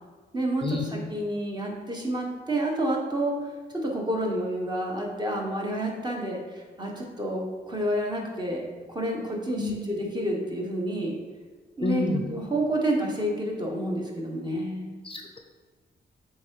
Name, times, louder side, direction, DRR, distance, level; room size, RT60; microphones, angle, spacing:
voice 1, 0.3-3.3 3.7-11.2 11.8-14.9, right 1 dB, 25° right, -1 dB, 1.3 m, -29 dB
voice 2, 11.8-12.2 15.0-15.4, left 3 dB, 30° left, 4 dB, 0.5 m, -28 dB
7.3 x 3.4 x 4.7 m, 1.4 s
cardioid pair, 105°, 18 cm